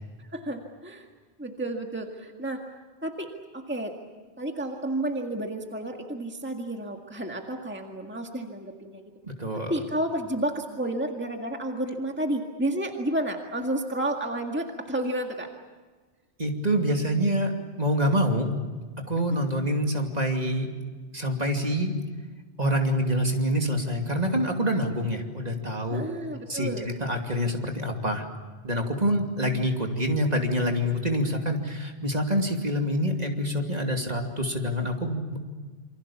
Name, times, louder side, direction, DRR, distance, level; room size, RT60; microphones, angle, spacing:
voice 1, 0.3-1.1 1.4-2.6 3.0-3.9 4.4-9.1 9.5-15.5 25.9-26.9, right 1 dB, 10° right, 2 dB, 1.9 m, -31 dB
voice 2, 9.2-9.7 16.4-17.5 17.8-18.5 19.1-20.7 21.1-21.9 22.6-26.0 26.5-28.2 28.6-35.4, equal, 35° right, 2 dB, 2.8 m, -26 dB
28.0 x 25.0 x 7.2 m, 1.4 s
omnidirectional pair, 1.1 m